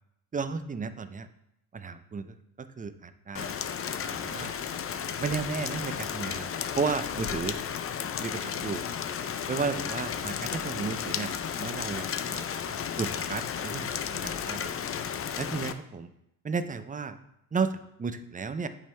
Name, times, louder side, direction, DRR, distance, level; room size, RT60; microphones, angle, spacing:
voice 1, 0.3-1.3 1.7-3.5 4.2-4.6 5.2-6.5 6.8-7.6 8.2-8.8 9.5-11.3 11.6-14.8 15.4-16.1 16.4-17.2 17.5-18.7, right 5 dB, 20° right, 11 dB, 0.6 m, -33 dB
Rain, 3.3-15.7, left 8 dB, 35° left, 0.6 m, -33 dB
8.5 x 5.6 x 3.4 m, 0.82 s
supercardioid pair, 75°, 41 cm